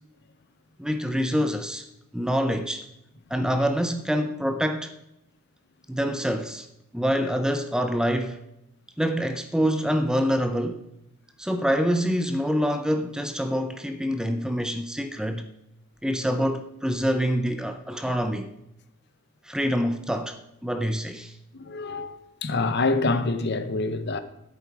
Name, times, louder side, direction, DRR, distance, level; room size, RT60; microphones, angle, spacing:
voice 1, 0.8-1.9 2.1-2.9 3.3-4.9 5.9-6.7 6.9-8.4 9.0-10.8 11.4-15.5 16.0-18.5 19.4-21.3, equal, 5° right, 0.5 m, -26 dB
voice 2, 21.5-24.2, left 3 dB, 50° left, 0.8 m, -26 dB
10.5 x 8.6 x 4.8 m
head